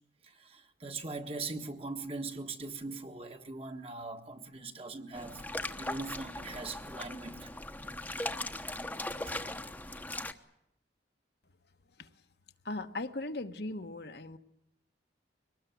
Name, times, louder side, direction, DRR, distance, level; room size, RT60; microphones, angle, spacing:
voice 1, 0.2-7.5 9.3-9.4, right 3 dB, 30° right, 1.6 m, -41 dB
sound 1, 5.1-10.3, left 2 dB, 10° left, 1.1 m, -39 dB
voice 2, 12.6-14.4, left 2 dB, 60° left, 1.2 m, -38 dB
23.5 x 19.5 x 9.4 m
head